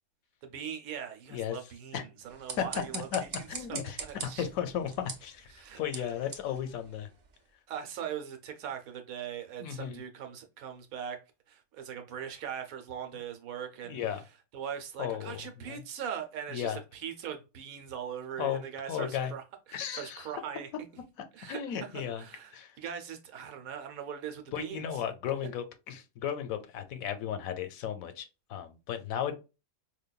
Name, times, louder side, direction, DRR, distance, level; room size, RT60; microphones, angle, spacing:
voice 1, 0.4-4.5 5.5-6.1 7.7-11.2 11.5-14.0 14.5-19.4 19.7-20.7 21.3-21.9 22.2-24.9, right 8 dB, 75° right, 1.2 m, -40 dB
sound 1, 2.2-7.5, right 4 dB, 45° right, 0.6 m, -44 dB
voice 2, 3.5-7.1 9.6-10.0 13.9-14.2 15.0-15.8 16.5-16.8 18.4-18.6 18.9-19.3 19.7-20.3 21.4-22.2 22.5-22.7 24.5-29.3, left 9 dB, 75° left, 1.1 m, -35 dB
5.1 x 2.2 x 2.3 m
omnidirectional pair, 1.5 m